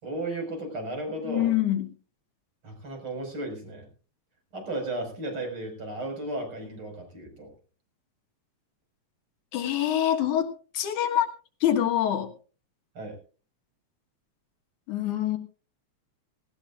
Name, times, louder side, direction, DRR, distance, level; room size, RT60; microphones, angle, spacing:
voice 1, 0.0-1.5 2.6-3.9 4.5-7.5 12.9-13.1, right 2 dB, 45° right, 3 dB, 6.2 m, -34 dB
voice 2, 1.2-1.9 9.5-11.3 11.6-12.3 14.9-15.4, left 11 dB, 85° left, 6 dB, 2.9 m, -25 dB
18.5 x 17.5 x 2.5 m, 0.37 s
omnidirectional pair, 3.4 m